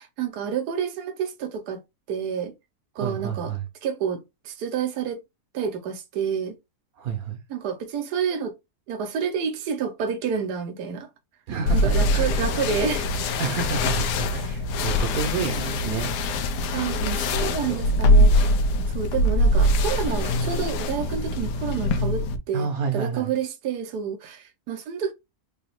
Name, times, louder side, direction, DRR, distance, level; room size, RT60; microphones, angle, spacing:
voice 1, 0.0-1.8 2.1-2.5 2.9-3.5 3.8-5.2 5.5-6.5 7.5-8.5 8.9-11.1 11.7-13.1 16.7-18.5 18.9-25.1, right 7 dB, 80° right, 1.3 m, -29 dB
voice 2, 3.0-3.6 7.0-7.4 11.5-12.3 13.4-16.1 16.4-16.6 17.7-17.8 22.5-23.3, right 6 dB, 65° right, 1.2 m, -30 dB
sound 1, 11.7-22.4, left 1 dB, 90° left, 1.2 m, -23 dB
4.9 x 2.3 x 3.1 m
omnidirectional pair, 1.7 m